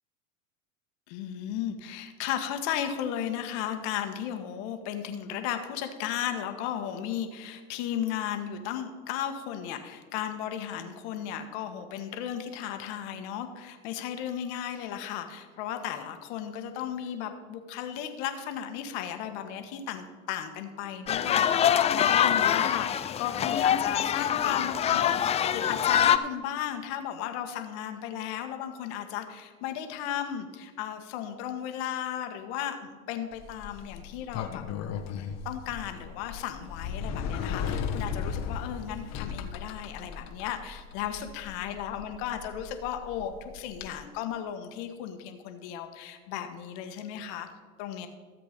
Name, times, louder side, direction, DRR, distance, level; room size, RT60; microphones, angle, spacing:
voice 1, 1.1-25.2 25.5-35.0 35.4-47.5 47.8-48.1, left 10 dB, 60° left, 7 dB, 1.6 m, -35 dB
sound 1, 21.1-26.2, left 9 dB, 20° left, 0.3 m, -24 dB
Sliding door, 33.3-43.9, left 6 dB, 40° left, 1.3 m, -37 dB
14.0 x 7.8 x 5.2 m, 1.4 s
hypercardioid pair, 95°, 39 cm